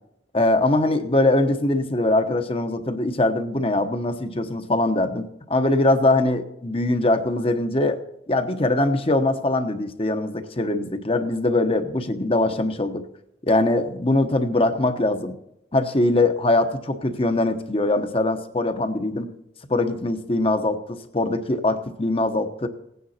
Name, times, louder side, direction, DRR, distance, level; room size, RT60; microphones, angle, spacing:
voice 1, 0.3-8.0 8.3-13.0 13.5-15.3 15.7-19.3 19.7-22.7, left 2 dB, 30° left, 7 dB, 1.0 m, -22 dB
17.5 x 9.4 x 4.3 m, 0.80 s
head